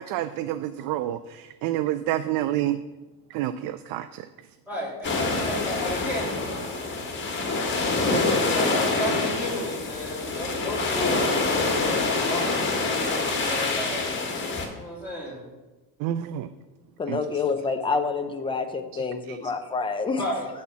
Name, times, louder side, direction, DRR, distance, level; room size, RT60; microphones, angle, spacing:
voice 1, 0.0-2.8 3.3-4.2 16.0-16.5 17.1-17.4 18.9-19.0 19.3-19.4, right 13 dB, 65° right, 11 dB, 0.5 m, -29 dB
voice 2, 4.7-6.4 8.0-14.1 14.7-15.4 20.2-20.5, equal, 5° right, -6 dB, 3.2 m, -33 dB
sound 1, 5.0-14.7, left 3 dB, 30° left, 1.7 m, -26 dB
voice 3, 17.0-20.2, left 4 dB, 15° left, 6 dB, 0.7 m, -27 dB
8.7 x 4.3 x 7.0 m, 1.1 s
cardioid pair, 140°, 36 cm